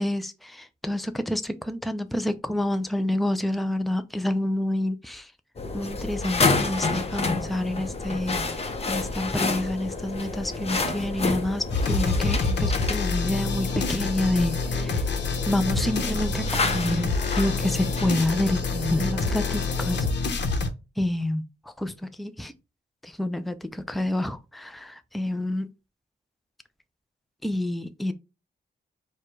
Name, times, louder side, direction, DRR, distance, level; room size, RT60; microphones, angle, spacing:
voice 1, 0.0-5.3 5.7-15.0 15.5-17.1 17.4-20.0 21.0-22.5 23.0-25.7 27.4-28.1, left 1 dB, ahead, 0.4 m, -28 dB
sound 1, 5.6-20.1, left 3 dB, 35° left, 0.8 m, -30 dB
sound 2, 11.7-20.7, left 4 dB, 80° left, 0.9 m, -27 dB
4.7 x 2.3 x 4.5 m
wide cardioid pair, 105°, 18 cm